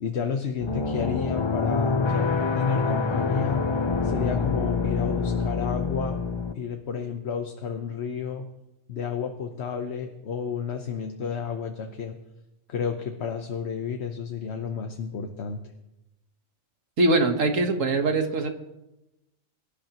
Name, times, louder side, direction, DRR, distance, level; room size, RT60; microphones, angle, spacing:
voice 1, 0.0-2.3 2.5-3.6 4.0-6.2 6.5-8.5 8.9-12.2 12.7-15.6, left 6 dB, 55° left, 4 dB, 1.1 m, -31 dB
sound 1, 0.6-6.5, left 4 dB, 35° left, 0.4 m, -26 dB
voice 2, 17.0-18.5, right 2 dB, 70° right, 6 dB, 1.8 m, -22 dB
23.0 x 12.0 x 3.0 m, 0.95 s
omnidirectional pair, 1.4 m